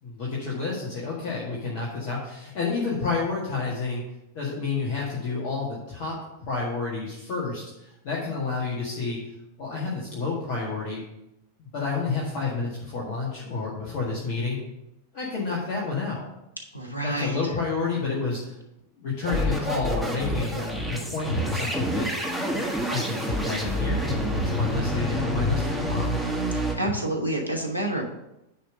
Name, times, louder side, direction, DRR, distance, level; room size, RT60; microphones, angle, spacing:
voice 1, 0.0-4.0 4.3-6.2 6.5-9.2 9.6-11.0 11.6-14.6 15.1-16.2 17.0-18.5 19.0-22.1 22.9-26.1, left 4 dB, 45° left, -5 dB, 1.8 m, -30 dB
voice 2, 16.7-17.4 26.5-28.0, right 1 dB, 85° left, 2 dB, 1.3 m, -28 dB
sound 1, 19.3-26.7, equal, 5° left, 1.6 m, -27 dB
10.0 x 3.4 x 6.5 m, 0.88 s
figure-of-eight pair, 90°, 0 cm